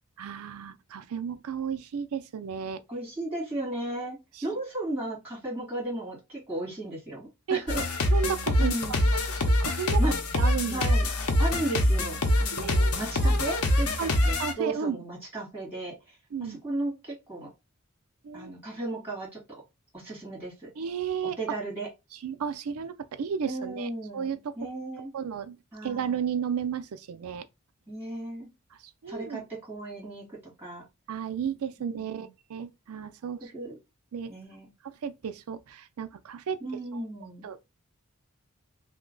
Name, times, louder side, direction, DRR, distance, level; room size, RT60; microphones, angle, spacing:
voice 1, 0.2-2.8 4.4-4.5 7.5-7.6 8.1-8.8 9.3-10.0 10.3-10.8 12.5-12.9 14.0-15.0 16.3-16.6 18.2-18.5 20.8-21.4 22.1-24.5 25.1-25.6 25.8-27.5 29.0-29.4 31.1-33.5 34.1-34.3 34.8-36.6 36.9-37.0 37.4-37.6, right 7 dB, 80° right, 0.4 m, -33 dB
voice 2, 2.9-7.8 8.6-9.1 10.0-10.1 10.7-11.1 11.4-15.9 16.4-17.5 18.3-19.4 19.9-20.7 21.2-21.9 23.4-25.1 25.7-26.2 27.9-28.5 29.1-30.8 33.4-33.8 34.3-34.7 36.6-37.5, right 2 dB, 10° right, 1.8 m, -35 dB
sound 1, 7.7-14.5, left 1 dB, 90° left, 0.7 m, -25 dB
3.0 x 2.2 x 3.7 m
head